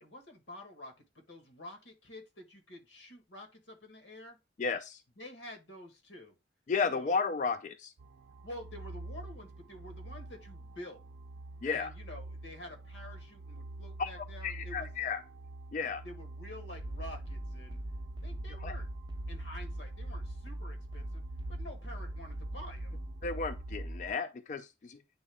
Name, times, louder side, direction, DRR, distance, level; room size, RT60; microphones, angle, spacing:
voice 1, 0.0-4.4 5.2-6.3 6.9-7.2 8.4-11.0 11.7-14.9 16.0-17.8 18.2-18.9 19.3-21.2 21.5-23.0, left 1 dB, 85° left, 1.7 m, -49 dB
voice 2, 4.6-5.0 6.7-7.9 11.6-11.9 14.0-15.2 15.7-16.0 18.6-18.7 23.2-25.0, left 5 dB, 40° left, 0.3 m, -33 dB
sound 1, 8.0-23.8, right 2 dB, 85° right, 0.5 m, -46 dB
sound 2, 16.8-24.1, right 1 dB, 25° right, 0.5 m, -41 dB
8.6 x 3.4 x 3.5 m
head